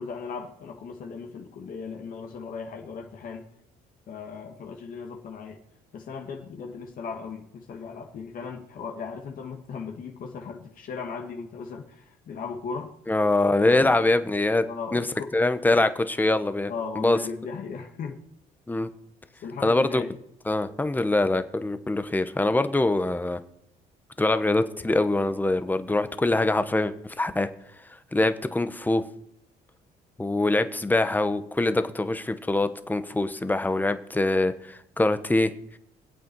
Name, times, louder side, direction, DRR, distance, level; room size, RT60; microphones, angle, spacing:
voice 1, 0.0-3.5 4.1-5.6 5.9-12.9 13.6-14.2 14.7-15.3 15.8-15.9 16.7-18.2 19.4-20.2, left 5 dB, 55° left, 2 dB, 1.9 m, -37 dB
voice 2, 13.1-14.6 14.9-15.0 15.3-16.7 17.0-17.2 18.7-18.9 19.6-20.0 20.5-23.4 24.2-27.5 28.1-29.0 30.2-35.5, left 2 dB, 10° left, 10 dB, 1.0 m, -24 dB
24.5 x 8.3 x 4.7 m, 0.76 s
cardioid pair, 110°, 17 cm